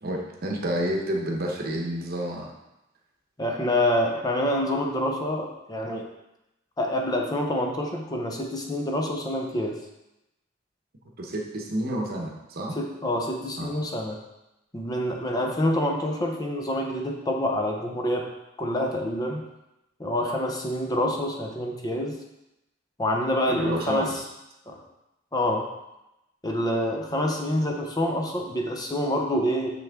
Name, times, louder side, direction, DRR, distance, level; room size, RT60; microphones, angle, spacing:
voice 1, 0.0-2.5 11.2-12.8 13.6-13.7 23.5-24.1, right 1 dB, 50° right, 0 dB, 1.1 m, -29 dB
voice 2, 3.4-6.1 6.8-9.8 12.8-14.2 14.7-18.3 18.6-19.4 20.0-22.2 23.0-24.2 24.7-24.8 25.3-25.7 26.4-29.7, left 1 dB, 20° left, 1 dB, 0.7 m, -27 dB
6.3 x 6.1 x 3.6 m, 0.93 s
head